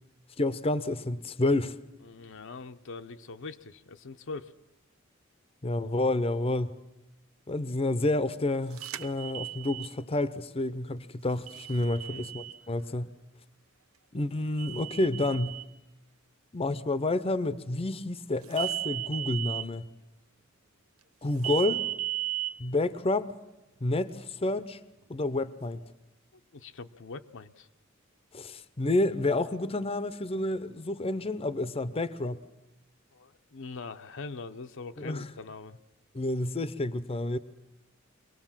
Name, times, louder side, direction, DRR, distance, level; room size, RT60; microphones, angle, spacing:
voice 1, 0.4-1.7 5.6-6.7 7.5-13.1 14.1-15.6 16.5-19.8 21.2-21.8 22.6-23.3 23.8-24.8 25.1-25.8 28.3-32.4 35.0-35.3 36.1-37.4, left 2 dB, 30° left, 14 dB, 0.7 m, -29 dB
voice 2, 2.0-4.5 11.9-12.3 26.5-27.7 33.1-35.8, left 4 dB, 65° left, 8 dB, 0.7 m, -42 dB
sound 1, 8.8-9.9 11.5-12.6 14.6-15.7 18.5-19.7 21.4-22.5, right 14 dB, 85° right, 0.9 m, -35 dB
24.0 x 18.5 x 7.4 m, 0.95 s
head